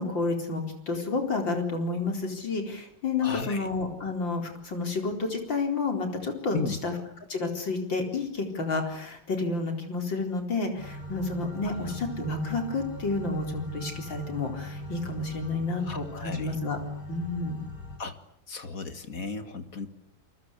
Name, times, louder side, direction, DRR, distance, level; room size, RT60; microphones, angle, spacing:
voice 1, 0.0-6.9 7.3-16.8 17.1-17.6, left 3 dB, 65° left, 4 dB, 5.0 m, -30 dB
voice 2, 3.2-3.7 6.5-6.8 11.6-11.9 15.8-16.6 18.0-18.2 18.5-19.9, left 4 dB, 45° left, 9 dB, 2.4 m, -35 dB
sound 1, 10.8-18.0, equal, 90° left, 5.3 m, -40 dB
29.0 x 24.0 x 8.3 m, 0.70 s
omnidirectional pair, 2.2 m